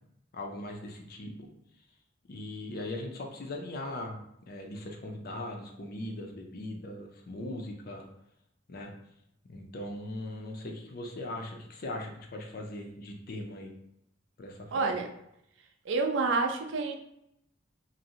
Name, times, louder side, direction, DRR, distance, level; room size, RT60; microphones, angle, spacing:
voice 1, 0.3-1.5 2.3-4.2 4.5-8.1 8.7-8.9 9.5-13.7 14.4-14.9, left 1 dB, 50° left, 2 dB, 0.4 m, -39 dB
voice 2, 14.7-15.0 15.9-16.9, right 3 dB, 65° right, 4 dB, 0.4 m, -28 dB
2.5 x 2.0 x 2.7 m, 0.79 s
head